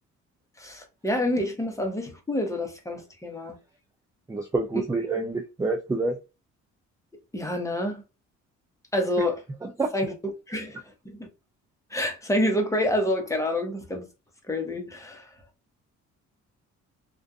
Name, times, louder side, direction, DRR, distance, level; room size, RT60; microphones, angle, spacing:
voice 1, 0.6-3.6 7.3-8.0 8.9-9.4 9.9-10.1 10.5-10.8 11.0-11.3 11.9-14.0 14.5-15.3, left 1 dB, 10° left, 0.8 m, -27 dB
voice 2, 4.3-6.2 9.6-9.9, right 3 dB, 10° right, 0.3 m, -27 dB
2.5 x 2.2 x 2.3 m
cardioid pair, 90°, 30 cm